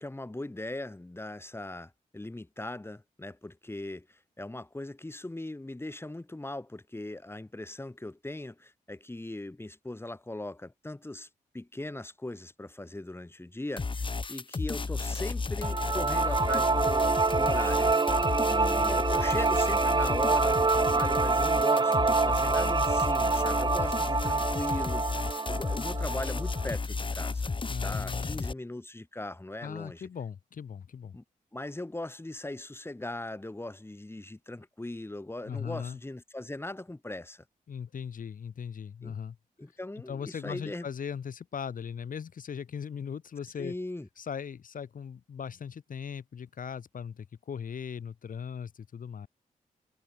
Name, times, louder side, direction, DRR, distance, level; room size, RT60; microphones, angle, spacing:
voice 1, 0.0-11.3 11.5-17.9 18.5-25.1 25.5-27.5 27.8-30.1 31.1-31.2 31.5-37.4 39.0-39.1 39.6-40.9 43.6-44.1, left 2 dB, 15° left, 4.6 m, -39 dB
sound 1, 13.8-28.5, left 4 dB, 35° left, 1.7 m, -33 dB
sound 2, 15.6-26.7, right 4 dB, 30° right, 1.1 m, -26 dB
voice 2, 27.7-28.5 29.6-31.1 35.5-36.0 37.7-39.4 40.1-43.7 44.2-49.3, left 7 dB, 65° left, 3.7 m, -39 dB
cardioid pair, 70°, 15 cm